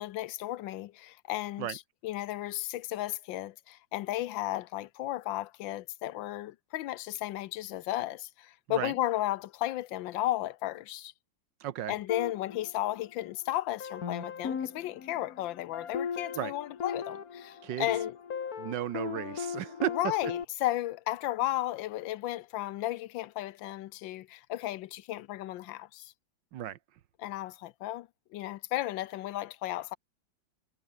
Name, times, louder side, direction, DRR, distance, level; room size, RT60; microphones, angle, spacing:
voice 1, 0.0-11.1 11.9-18.2 19.9-26.1 27.2-30.0, left 15 dB, 85° left, 1.4 m, -34 dB
voice 2, 11.6-11.9 16.3-16.5 17.6-17.9 18.6-20.0 26.5-26.8, right 11 dB, 75° right, 1.6 m, -34 dB
sound 1, 12.1-13.4 13.8-20.4, left 6 dB, 50° left, 2.0 m, -38 dB
omnidirectional pair, 2.1 m